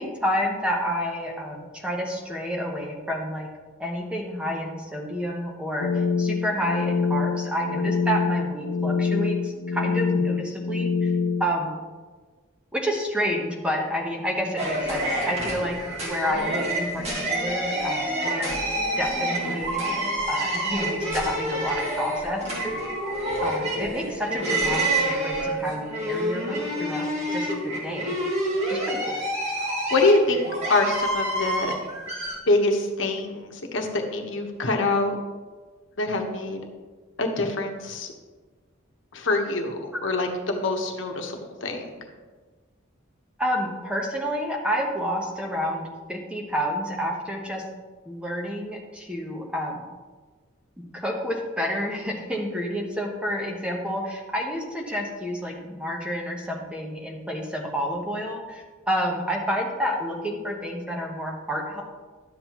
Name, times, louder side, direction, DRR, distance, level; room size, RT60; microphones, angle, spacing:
voice 1, 0.0-3.5 3.8-11.1 11.4-11.8 12.7-15.7 16.0-18.5 19.0-19.8 20.3-22.9 23.4-28.1 28.7-29.0 43.4-47.6 48.1-49.8 50.9-61.8, equal, 5° right, 0 dB, 1.0 m, -29 dB
sound 1, 5.8-11.4, left 5 dB, 90° left, 0.5 m, -25 dB
sound 2, 14.6-32.4, right 1 dB, 35° right, 1.8 m, -28 dB
voice 2, 29.9-30.4 30.7-31.7 32.5-35.2 36.0-36.6 37.2-38.1 39.1-41.3 41.6-41.8, left 2 dB, 70° left, 3 dB, 1.2 m, -24 dB
11.5 x 7.6 x 3.0 m, 1.4 s
head